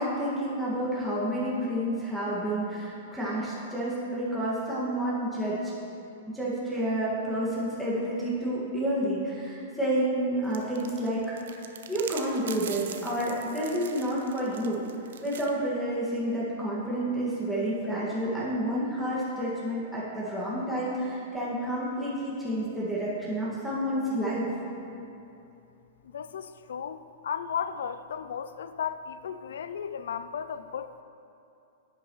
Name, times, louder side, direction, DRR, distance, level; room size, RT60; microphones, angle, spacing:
voice 1, 0.0-5.7 6.3-11.2 11.9-14.8 15.2-24.5, right 1 dB, ahead, -8 dB, 1.9 m, -29 dB
sound 1, 10.5-15.5, right 8 dB, 75° right, 0.6 m, -42 dB
voice 2, 26.0-31.0, left 7 dB, 80° left, 12 dB, 0.4 m, -35 dB
10.5 x 8.2 x 3.1 m, 2.7 s
hypercardioid pair, 120°, 0 cm